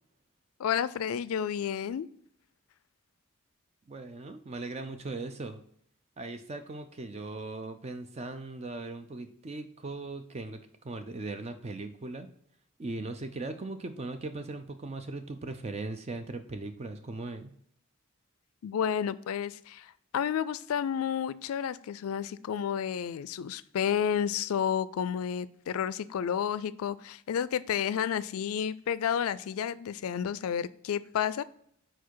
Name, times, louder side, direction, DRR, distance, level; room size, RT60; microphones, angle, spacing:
voice 1, 0.6-2.1 18.6-31.4, left 8 dB, 80° left, 17 dB, 0.3 m, -31 dB
voice 2, 3.9-5.6 6.2-10.6 10.8-12.3 12.8-17.5, right 2 dB, 30° right, 8 dB, 0.4 m, -39 dB
4.7 x 4.4 x 4.5 m, 0.68 s
head